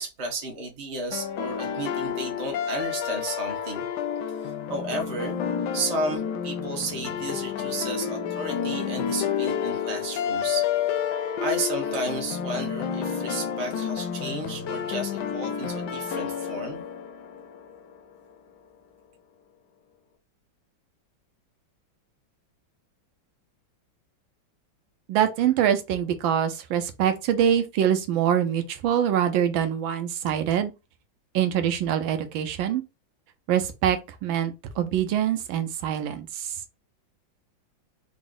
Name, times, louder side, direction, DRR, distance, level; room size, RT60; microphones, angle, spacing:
voice 1, 0.0-3.9 4.4-5.4 5.7-10.7 11.0-16.8, right 2 dB, 35° right, 0.6 m, -33 dB
sound 1, 1.1-18.0, left 8 dB, 70° left, 1.1 m, -30 dB
voice 2, 25.1-30.7 31.3-32.8 33.5-36.6, right 9 dB, 80° right, 1.4 m, -24 dB
4.0 x 2.0 x 3.7 m
omnidirectional pair, 2.2 m